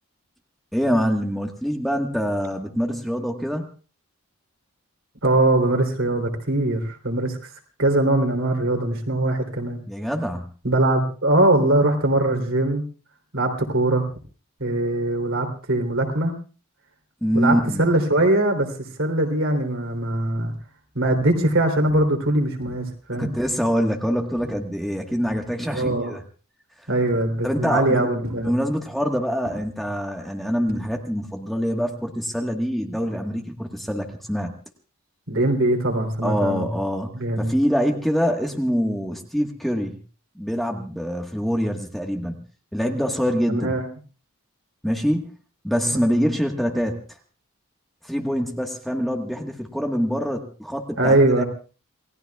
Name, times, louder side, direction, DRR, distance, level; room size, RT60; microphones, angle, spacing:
voice 1, 0.7-3.7 9.9-10.5 17.2-17.8 23.2-26.2 26.8-26.9 27.4-28.1 28.4-34.5 36.2-37.1 37.4-40.0 40.3-42.4 42.7-43.7 44.8-45.3 45.6-47.0 48.0-51.4, equal, ahead, 2 dB, 1.4 m, -25 dB
voice 2, 5.2-7.4 7.8-9.8 10.6-12.8 13.3-14.0 14.6-16.3 17.3-18.7 19.0-20.5 20.9-23.3 25.7-26.1 26.9-28.5 35.3-36.7 37.1-37.5 43.5-43.9 51.0-51.4, right 1 dB, 65° right, 3 dB, 3.3 m, -21 dB
sound 1, 19.5-19.8 20.4-20.6 21.1-21.6 21.9-22.3 22.6-23.7 24.3-24.7 25.0-25.9 27.1-27.6 28.2-29.1 29.4-31.3 31.6-32.0 34.1-34.2, equal, 90° right, 7.4 m, -43 dB
28.0 x 18.5 x 2.4 m, 0.37 s
head